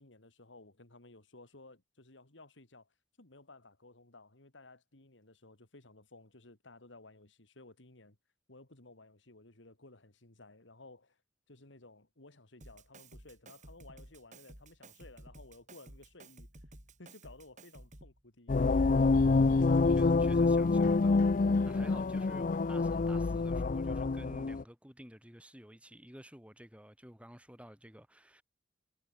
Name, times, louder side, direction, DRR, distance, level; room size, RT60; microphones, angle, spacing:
voice 1, 0.0-2.9 3.2-8.2 8.5-11.2 11.5-16.5 17.0-18.8, left 2 dB, 90° left, 2.8 m, -56 dB
Drum kit, 12.6-18.2, right 1 dB, 40° right, 5.8 m, -54 dB
sound 1, 18.5-24.6, left 3 dB, 45° left, 0.5 m, -27 dB
voice 2, 19.9-28.4, equal, 5° right, 7.8 m, -52 dB
head